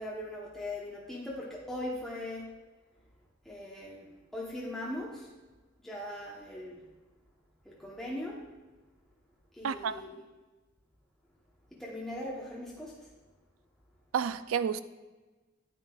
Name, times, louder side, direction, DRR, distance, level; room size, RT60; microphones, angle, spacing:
voice 1, 0.0-2.5 3.4-5.3 5.8-6.8 7.8-8.4 9.6-10.2 11.8-12.9, left 1 dB, ahead, -6 dB, 1.0 m, -39 dB
voice 2, 9.6-10.0 14.1-14.8, right 7 dB, 80° right, 14 dB, 0.4 m, -30 dB
9.6 x 8.9 x 2.4 m, 1.2 s
head